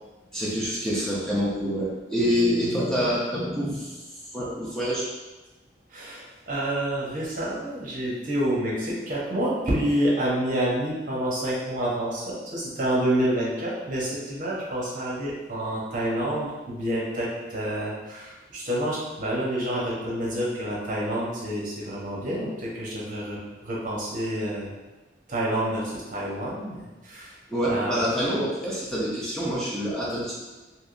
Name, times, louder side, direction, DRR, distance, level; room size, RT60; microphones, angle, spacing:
voice 1, 0.3-4.0 4.3-5.1 27.5-30.3, equal, 5° left, -8 dB, 0.5 m, -26 dB
voice 2, 2.6-2.9 5.9-24.7 25.3-27.3 27.7-28.0, right 1 dB, 45° right, -6 dB, 0.9 m, -28 dB
3.5 x 2.8 x 2.5 m, 1.2 s
head